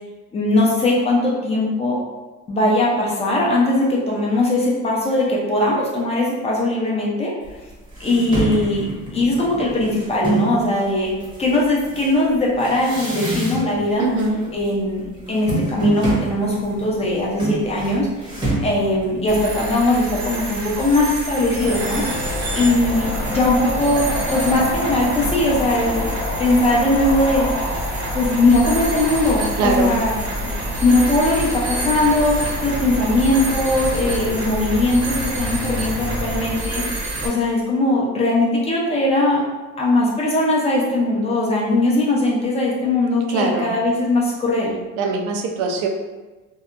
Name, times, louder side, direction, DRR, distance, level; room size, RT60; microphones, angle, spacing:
voice 1, 0.3-2.0 2.5-7.3 8.0-8.9 9.1-14.1 14.5-22.0 22.5-26.1 26.4-27.5 28.1-30.1 30.8-39.4 39.8-44.8, left 2 dB, 20° left, -4 dB, 0.4 m, -20 dB
sound 1, 7.5-7.6 7.9-10.6 11.2-13.9 14.1-14.7 15.0-19.6, right 2 dB, 15° right, 0.7 m, -26 dB
voice 2, 14.0-14.4 29.6-29.9 43.3-43.8 45.0-45.9, right 3 dB, 85° right, 3 dB, 0.5 m, -22 dB
sound 2, 19.3-37.3, right 2 dB, 50° right, 0.7 m, -28 dB
sound 3, 21.6-36.6, left 1 dB, 85° left, 0.9 m, -28 dB
2.7 x 2.2 x 2.4 m, 1.2 s
cardioid pair, 150°, 30 cm